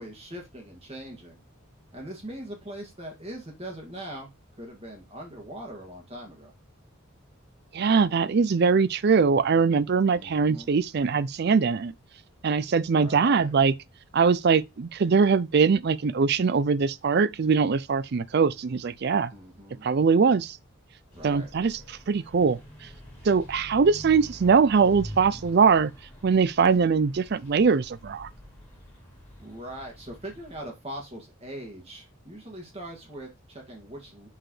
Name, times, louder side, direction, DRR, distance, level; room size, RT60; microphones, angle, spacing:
voice 1, 0.0-1.4 1.9-4.3 4.6-6.5 10.1-10.7 12.9-13.5 19.3-19.9 21.1-21.5 29.4-34.3, right 1 dB, 30° right, 2.1 m, -41 dB
voice 2, 7.7-11.9 12.4-13.7 14.1-19.3 19.8-20.6 21.2-22.9 23.2-25.9 26.2-28.3, right 5 dB, 50° right, 0.4 m, -22 dB
sound 1, 21.1-30.6, equal, 10° left, 2.9 m, -46 dB
6.3 x 4.6 x 3.2 m
head